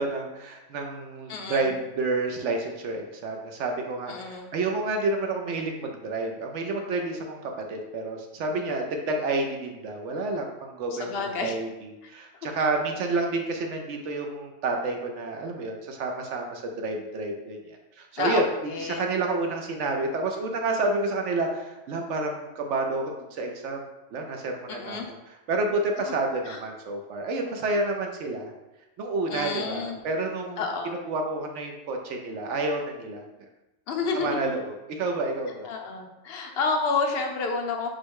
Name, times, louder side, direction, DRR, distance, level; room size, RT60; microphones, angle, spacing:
voice 1, 0.0-25.0 25.5-28.5 29.0-30.6 31.1-33.3 34.1-35.7, right 2 dB, 70° right, 3 dB, 0.8 m, -29 dB
voice 2, 1.3-1.7 4.1-4.5 10.9-11.6 12.6-12.7 18.2-18.4 18.7-19.1 24.7-25.1 26.5-26.6 29.3-30.0 30.6-31.0 33.9-34.4 35.6-37.9, left 4 dB, 60° left, 3 dB, 0.7 m, -29 dB
4.4 x 2.1 x 4.5 m, 0.99 s
omnidirectional pair, 1.4 m